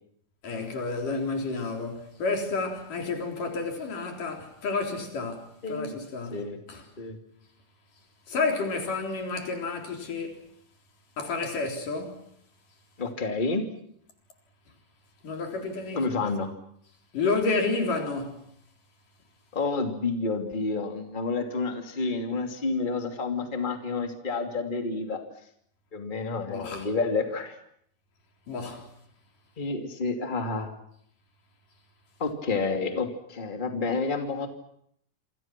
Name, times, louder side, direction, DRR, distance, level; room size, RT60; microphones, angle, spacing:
voice 1, 0.4-6.4 6.7-6.8 8.3-10.4 11.2-12.3 15.2-16.3 17.1-18.4 26.5-26.9 28.5-28.9, left 3 dB, 80° left, 5.6 m, -30 dB
voice 2, 5.6-6.0 6.3-6.6 7.0-7.2 13.0-13.6 15.9-16.5 19.5-25.2 25.9-27.6 29.6-30.7 32.2-34.5, left 3 dB, 15° left, 2.5 m, -29 dB
27.5 x 26.5 x 6.1 m
omnidirectional pair, 3.7 m